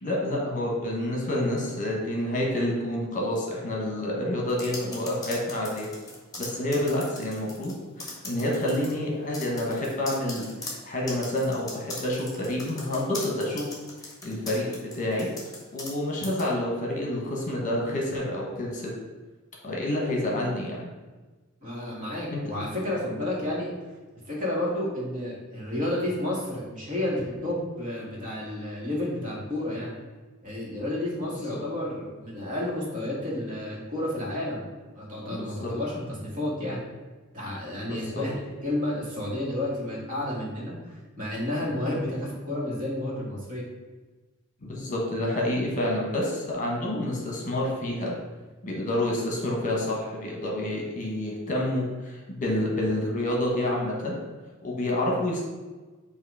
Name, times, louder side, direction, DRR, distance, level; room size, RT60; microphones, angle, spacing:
voice 1, 0.0-5.9 6.4-13.7 14.2-14.7 15.0-15.3 15.7-18.9 19.6-20.8 22.3-22.4 31.5-31.6 35.4-35.7 37.9-38.2 44.6-48.2 48.6-54.2 54.6-55.4, left 1 dB, 40° left, -2 dB, 1.2 m, -28 dB
sound 1, 4.5-7.7 8.0-8.9 9.3-16.0 16.2-16.5, left 2 dB, 20° left, 1.4 m, -39 dB
voice 2, 21.6-23.7 24.3-29.9 30.4-34.7 35.0-36.8 37.3-43.6, left 1 dB, 40° right, -4 dB, 1.8 m, -31 dB
7.7 x 2.8 x 4.8 m, 1.3 s
head